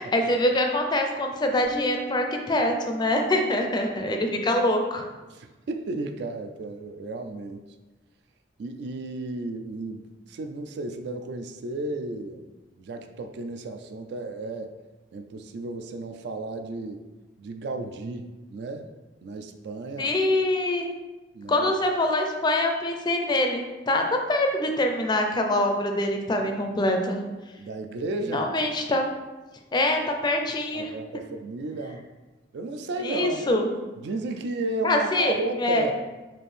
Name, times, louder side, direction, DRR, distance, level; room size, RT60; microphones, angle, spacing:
voice 1, 0.0-5.0 20.0-20.9 21.5-24.0 24.3-27.2 28.3-29.0 29.7-30.9 33.0-33.7 34.8-35.9, left 1 dB, 25° left, 3 dB, 0.4 m, -24 dB
Bass guitar, 1.6-4.1, right 1 dB, 30° right, 0.8 m, -43 dB
voice 2, 5.3-7.6 8.6-12.5 12.7-14.8 15.1-17.0 17.4-18.9 19.2-20.2 21.3-21.7 27.6-28.5 30.7-32.1 32.5-33.7 34.0-36.0, right 2 dB, 65° right, 6 dB, 0.3 m, -33 dB
4.4 x 2.5 x 3.2 m, 1.2 s
head